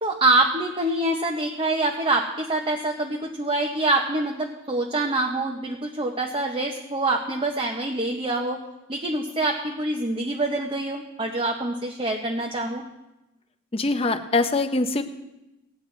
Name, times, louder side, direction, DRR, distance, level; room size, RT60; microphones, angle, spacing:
voice 1, 0.0-8.6 8.9-12.8, right 2 dB, 25° right, 2 dB, 0.8 m, -25 dB
voice 2, 13.7-15.0, left 3 dB, 30° left, 8 dB, 0.7 m, -23 dB
18.5 x 9.2 x 3.2 m, 0.97 s
head